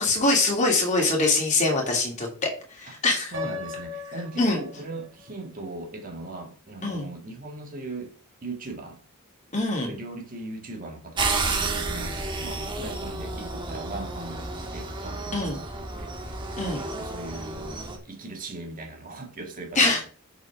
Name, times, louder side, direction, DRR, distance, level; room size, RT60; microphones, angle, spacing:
voice 1, 0.0-2.3 2.7-3.3 4.4-4.6 6.8-7.1 9.5-9.9 15.3-15.6 16.6-16.8 19.8-20.0, left 2 dB, 35° left, 2.7 m, -23 dB
voice 2, 3.3-8.1 8.4-9.0 9.8-20.1, right 2 dB, 40° right, 1.9 m, -39 dB
Piano, 3.3-5.3, left 4 dB, 70° right, 2.6 m, -38 dB
sound 1, 11.2-18.0, right 3 dB, 25° right, 1.5 m, -31 dB
6.7 x 6.1 x 5.9 m
head